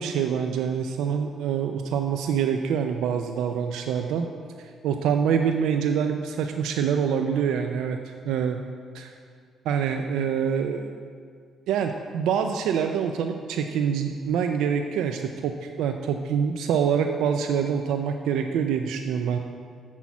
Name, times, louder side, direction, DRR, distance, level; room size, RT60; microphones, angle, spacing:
voice 1, 0.0-4.3 4.8-8.0 8.2-8.6 8.9-9.1 9.7-10.9 11.7-19.4, right 7 dB, 85° right, 6 dB, 0.4 m, -25 dB
7.3 x 6.2 x 7.0 m, 2.1 s
cardioid pair, 90°, 0 cm